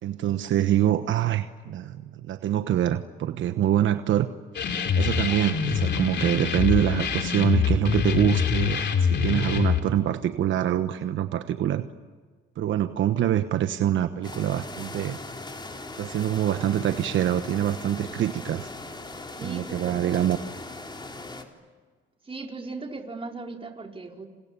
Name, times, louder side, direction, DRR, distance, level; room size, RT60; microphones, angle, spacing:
voice 1, 0.0-4.3 4.9-11.9 12.6-15.2 16.0-18.7 19.4-20.4, right 11 dB, 75° right, 9 dB, 1.2 m, -25 dB
sound 1, 4.5-9.8, left 7 dB, 60° left, 2.8 m, -24 dB
sound 2, 14.2-21.4, left 2 dB, 20° left, 3.7 m, -39 dB
voice 2, 19.4-20.3 22.2-24.3, right 3 dB, 30° right, 2 dB, 4.7 m, -38 dB
29.5 x 28.5 x 7.0 m, 1.5 s
cardioid pair, 90°, 20 cm